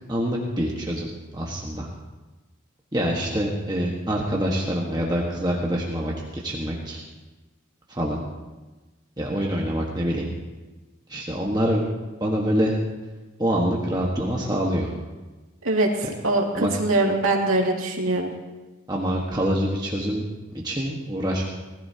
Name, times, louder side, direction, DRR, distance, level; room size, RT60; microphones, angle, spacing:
voice 1, 0.1-1.9 2.9-7.0 7.9-8.2 9.2-10.3 11.1-11.8 12.2-12.7 13.4-14.9 16.5-16.7 18.9-20.2 20.5-21.4, equal, 20° right, -3 dB, 1.4 m, -25 dB
voice 2, 16.2-18.3, right 2 dB, 90° right, 0 dB, 2.4 m, -22 dB
19.5 x 15.0 x 2.9 m, 1.2 s
head